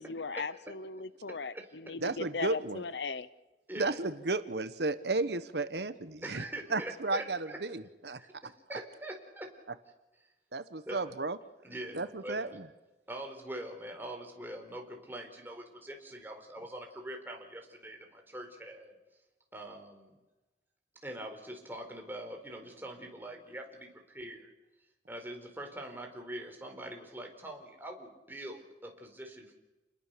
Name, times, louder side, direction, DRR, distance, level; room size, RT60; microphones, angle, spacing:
voice 1, 0.0-3.3, left 4 dB, 80° left, 0.9 m, -38 dB
voice 2, 1.3-1.9 3.7-4.0 6.2-7.6 8.2-9.5 10.9-11.1 11.6-12.6 13.1-18.9 19.5-20.1 21.0-24.5 25.1-29.5, right 1 dB, 10° right, 4.3 m, -43 dB
voice 3, 2.0-2.8 3.8-6.4 6.7-8.2 10.5-11.4 11.9-12.7, right 3 dB, 70° right, 1.2 m, -33 dB
29.0 x 21.0 x 6.8 m
head